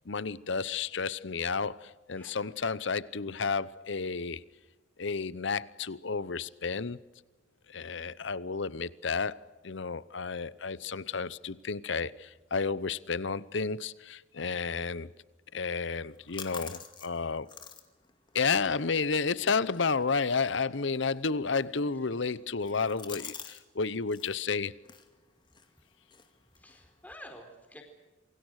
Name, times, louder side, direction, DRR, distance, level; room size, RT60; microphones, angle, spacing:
voice 1, 0.1-4.4 5.0-7.0 7.7-15.1 15.5-17.5 18.3-24.7, left 4 dB, 65° left, 0.8 m, -31 dB
sound 1, 15.9-23.6 23.9-24.4 24.8-27.1, left 6 dB, 25° left, 2.3 m, -49 dB
voice 2, 26.6-27.8, left 1 dB, 10° left, 4.4 m, -49 dB
27.5 x 24.0 x 6.5 m
head